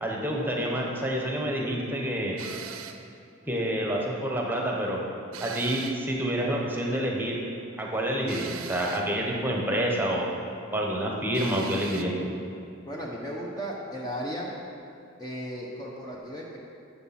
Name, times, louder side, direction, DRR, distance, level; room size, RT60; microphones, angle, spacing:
voice 1, 0.0-2.4 3.5-5.0 5.4-7.4 7.8-10.3 10.7-12.3, right 1 dB, 10° right, -1 dB, 1.1 m, -28 dB
sound 1, 2.4-3.1 5.3-6.1 8.3-9.1 11.3-12.1, right 7 dB, 80° right, 0.6 m, -40 dB
voice 2, 12.9-14.5 15.2-16.6, equal, 20° left, -3 dB, 0.9 m, -35 dB
13.0 x 7.1 x 4.3 m, 2.4 s
head